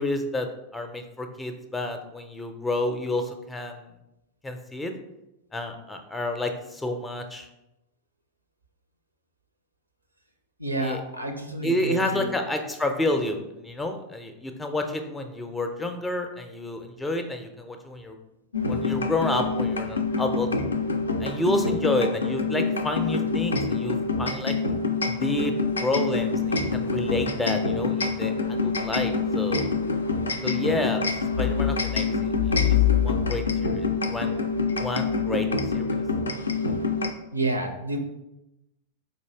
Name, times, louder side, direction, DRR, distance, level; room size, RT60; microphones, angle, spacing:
voice 1, 0.0-3.8 4.4-4.9 5.5-7.5 10.8-11.0 11.6-18.2 18.7-20.5 21.2-24.5 25.0-25.5 25.8-29.8 30.4-32.8 33.0-34.3 34.8-35.5 35.7-36.0, left 1 dB, 10° left, 5 dB, 0.4 m, -29 dB
voice 2, 10.6-12.4 37.3-38.0, right 2 dB, 85° right, 5 dB, 0.5 m, -29 dB
sound 1, 18.5-37.1, left 4 dB, 75° left, 0.3 m, -26 dB
4.2 x 2.6 x 3.3 m, 0.91 s
figure-of-eight pair, 90°, 0 cm